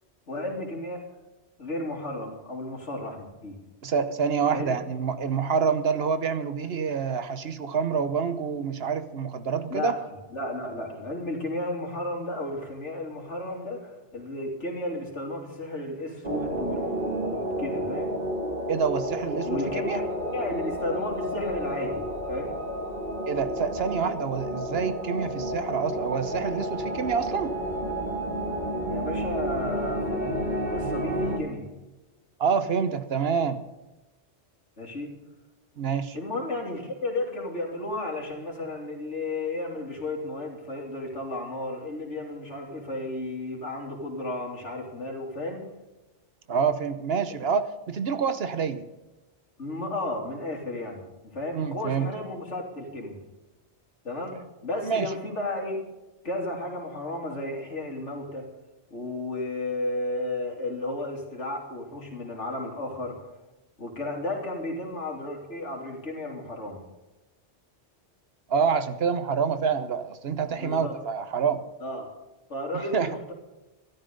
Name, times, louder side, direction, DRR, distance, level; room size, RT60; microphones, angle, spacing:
voice 1, 0.3-1.1 1.6-3.6 4.5-4.8 9.7-10.0 10.3-18.2 19.5-20.0 20.3-22.5 28.9-31.7 34.8-35.1 36.1-45.7 47.3-47.5 49.6-51.0 51.3-53.2 54.0-55.8 56.2-58.5 58.9-63.3 63.8-66.8 70.6-71.0 71.8-72.1 72.5-73.3, left 1 dB, 85° left, 1 dB, 3.4 m, -33 dB
voice 2, 3.8-10.0 18.7-20.0 23.3-27.5 32.4-33.6 35.8-36.2 46.5-48.8 51.5-52.1 54.8-55.1 68.5-71.6 72.9-73.1, right 6 dB, 60° right, 12 dB, 1.1 m, -27 dB
sound 1, 16.2-31.4, equal, 40° right, 1.9 m, -31 dB
14.0 x 12.5 x 5.3 m, 1.1 s
omnidirectional pair, 1.2 m